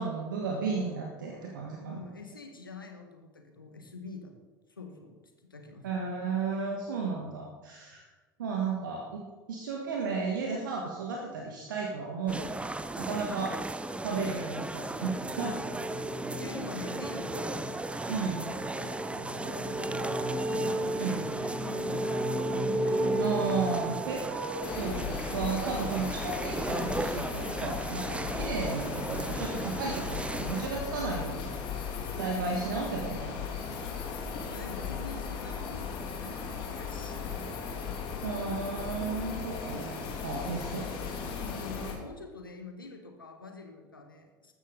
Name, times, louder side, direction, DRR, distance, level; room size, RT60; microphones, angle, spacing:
voice 1, 0.0-2.0 5.8-8.0 8.4-9.2 9.5-13.5 14.0-15.5 18.1-18.5 20.9-21.3 23.2-31.5 32.1-33.4 38.2-40.0 40.2-40.9, right 4 dB, 70° right, 0 dB, 1.6 m, -34 dB
voice 2, 1.8-4.4 4.7-5.2 5.5-5.9 13.3-13.5 15.4-15.8 16.4-17.7 18.4-22.4 22.8-23.2 34.5-37.3 37.7-37.8 40.3-40.7 41.4-44.5, left 4 dB, 85° left, 5 dB, 1.5 m, -46 dB
sound 1, 12.3-30.7, right 2 dB, 10° right, 0.8 m, -37 dB
sound 2, 14.5-24.8, right 1 dB, 50° right, 4.3 m, -34 dB
sound 3, 24.6-41.9, left 6 dB, 50° left, 2.6 m, -37 dB
14.5 x 12.5 x 3.9 m, 1.3 s
figure-of-eight pair, 65°, 11 cm